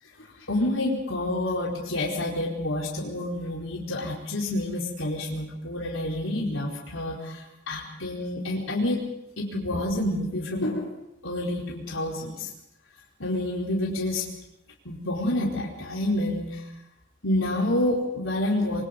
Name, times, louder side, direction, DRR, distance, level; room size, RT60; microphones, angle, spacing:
voice 1, 0.5-7.4 7.7-9.0 9.4-10.9 11.2-12.5 13.2-14.2 14.8-16.6 17.2-18.8, left 1 dB, 75° left, -3 dB, 4.6 m, -28 dB
26.5 x 24.5 x 5.4 m, 0.88 s
head